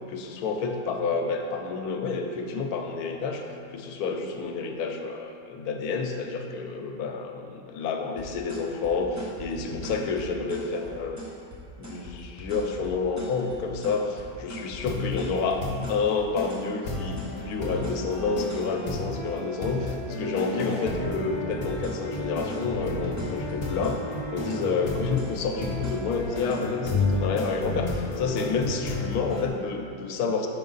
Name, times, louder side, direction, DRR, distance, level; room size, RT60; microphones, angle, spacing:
voice 1, 0.1-3.4 3.7-11.2 11.8-15.6 15.9-24.0 24.3-30.5, left 4 dB, 80° left, 4 dB, 1.1 m, -29 dB
sound 1, 8.2-18.8 21.5-27.0, equal, 25° right, 0.4 m, -40 dB
sound 2, 14.9-15.2 15.6-15.9 16.4-16.5 16.8-29.5, left 2 dB, 50° left, 0.9 m, -32 dB
5.2 x 4.7 x 3.8 m, 2.4 s
omnidirectional pair, 1.6 m